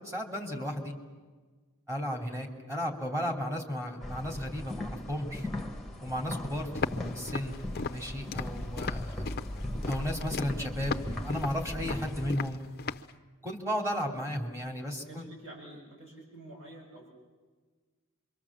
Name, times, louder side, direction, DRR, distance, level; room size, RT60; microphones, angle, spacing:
voice 1, 0.0-0.9 1.9-5.5 6.0-6.8 7.1-7.6 7.9-9.3 9.9-12.6 13.4-15.2, equal, 15° right, 2 dB, 3.0 m, -34 dB
sound 1, 4.0-12.3, left 1 dB, ahead, 1.5 m, -38 dB
Walk footsteps, 6.7-13.1, left 4 dB, 45° left, 0.7 m, -37 dB
voice 2, 15.1-17.1, right 1 dB, 60° right, -2 dB, 7.4 m, -48 dB
27.0 x 24.0 x 7.4 m, 1.4 s
head